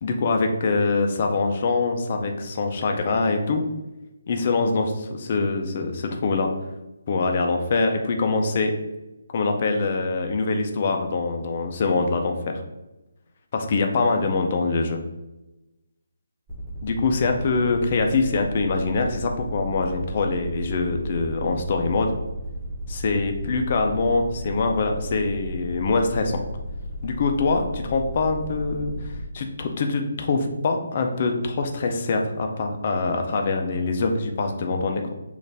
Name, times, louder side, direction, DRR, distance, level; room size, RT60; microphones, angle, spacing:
voice 1, 0.0-3.6 4.3-6.5 7.1-8.7 9.3-12.6 13.5-15.0 16.8-22.1 22.9-26.4 27.0-35.1, left 3 dB, 25° left, 4 dB, 0.4 m, -24 dB
sound 1, 16.5-29.2, right 1 dB, 10° right, 1.0 m, -34 dB
6.5 x 2.4 x 3.4 m, 1.0 s
hypercardioid pair, 180°, 0 cm